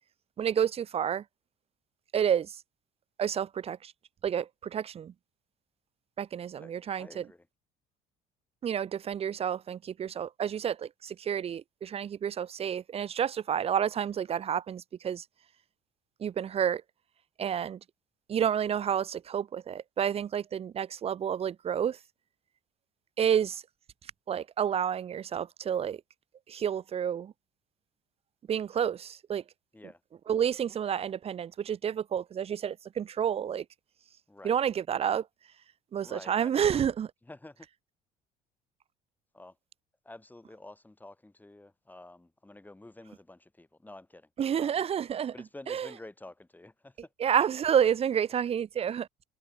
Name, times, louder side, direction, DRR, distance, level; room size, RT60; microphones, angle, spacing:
voice 1, 0.4-1.2 2.1-2.5 3.2-3.9 4.2-5.1 6.2-7.2 8.6-15.2 16.2-16.8 17.4-17.8 18.3-22.0 23.2-23.6 24.3-26.0 26.5-27.3 28.5-29.4 30.3-33.6 34.4-35.2 35.9-37.1 44.4-45.3 45.7-45.9 47.2-49.1, right 8 dB, 35° right, 0.6 m, -29 dB
voice 2, 6.6-7.5 29.7-30.0 34.3-34.6 36.0-36.8 37.2-37.7 39.3-39.6 40.0-44.3 44.6-44.9 45.3-47.1, left 2 dB, 10° left, 5.1 m, -50 dB
supercardioid pair, 95°, 16 cm